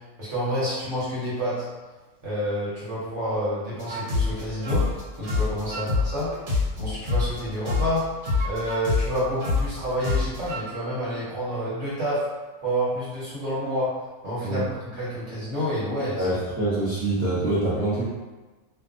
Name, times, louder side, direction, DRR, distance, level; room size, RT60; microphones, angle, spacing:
voice 1, 0.2-1.7 2.2-4.9 5.2-6.3 6.8-8.1 8.4-12.2 12.6-13.9 14.2-16.3, equal, 60° right, -10 dB, 1.3 m, -28 dB
sound 1, 3.8-7.4 7.7-10.6, left 3 dB, 90° right, 1.2 m, -26 dB
voice 2, 16.2-18.1, right 2 dB, 15° right, -10 dB, 0.6 m, -25 dB
2.5 x 2.4 x 2.4 m, 1.2 s
omnidirectional pair, 1.5 m